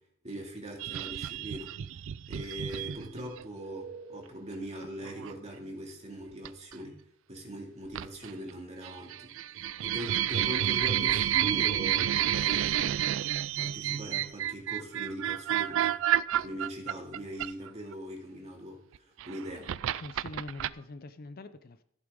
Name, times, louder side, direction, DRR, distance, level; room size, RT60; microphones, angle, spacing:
voice 1, 0.2-1.7 2.3-7.0 7.3-13.0 13.6-16.0 16.3-19.7, right 1 dB, 30° right, 1 dB, 2.3 m, -41 dB
sound 1, 0.8-3.4 5.0-5.3 6.5-6.7 7.9-8.5 8.8-17.9 19.0-20.7, right 11 dB, 65° right, 0.3 m, -30 dB
Telephone, 3.6-4.3 4.8-4.9 6.7-6.8 7.2-7.4 12.7-13.5 20.6-20.8, right 5 dB, 90° right, 1.1 m, -47 dB
voice 2, 19.6-21.8, left 2 dB, 45° left, 12 dB, 0.5 m, -45 dB
15.0 x 7.9 x 3.7 m, 0.74 s
head